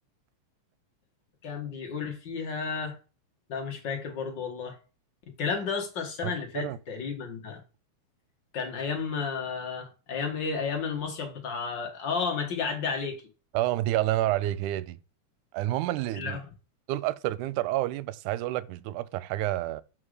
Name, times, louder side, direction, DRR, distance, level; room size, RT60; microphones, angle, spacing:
voice 1, 1.4-3.0 3.5-4.8 5.4-7.6 8.5-13.2 16.1-16.5, left 5 dB, 45° left, 1.8 m, -32 dB
voice 2, 6.2-6.8 13.5-15.0 15.5-16.4 16.9-19.8, right 15 dB, 90° right, 2.0 m, -29 dB
5.9 x 5.1 x 4.8 m
omnidirectional pair, 3.4 m